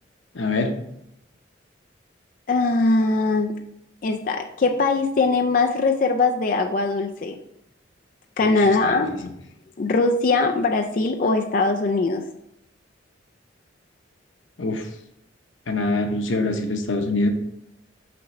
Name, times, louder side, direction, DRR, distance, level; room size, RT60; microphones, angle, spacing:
voice 1, 0.3-0.8 8.4-9.3 14.6-14.9 15.7-17.3, left 2 dB, 90° left, 6 dB, 0.8 m, -25 dB
voice 2, 2.5-3.5 4.0-7.4 8.4-9.1 9.8-12.2, left 3 dB, 45° left, 4 dB, 0.4 m, -21 dB
6.0 x 5.9 x 3.1 m, 0.78 s
head